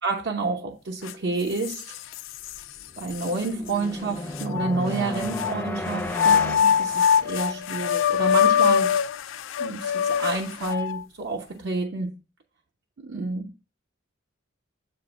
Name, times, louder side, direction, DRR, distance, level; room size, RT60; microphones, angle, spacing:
voice 1, 0.0-2.0 3.0-9.0 9.6-12.1 13.0-13.5, right 3 dB, 65° right, 0.7 m, -29 dB
sound 1, 1.1-1.2 1.6-2.6 3.2-3.3 4.4-5.5 6.1-11.0, left 8 dB, 75° left, 0.3 m, -23 dB
sound 2, 2.6-7.8, left 2 dB, 10° left, 0.4 m, -34 dB
7.7 x 2.6 x 4.9 m
head